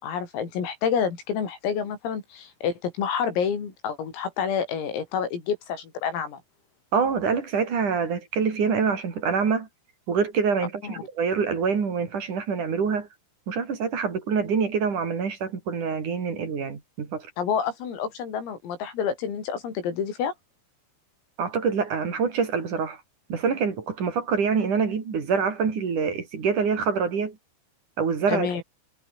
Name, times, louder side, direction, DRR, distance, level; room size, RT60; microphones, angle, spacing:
voice 1, 0.0-6.4 10.8-11.0 17.4-20.3 28.3-28.6, left 7 dB, 90° left, 7.8 m, -28 dB
voice 2, 6.9-9.7 10.1-13.1 13.5-17.3 21.4-23.0 23.3-27.4 28.0-28.5, right 5 dB, 40° right, 4.7 m, -25 dB
omnidirectional pair, 5.9 m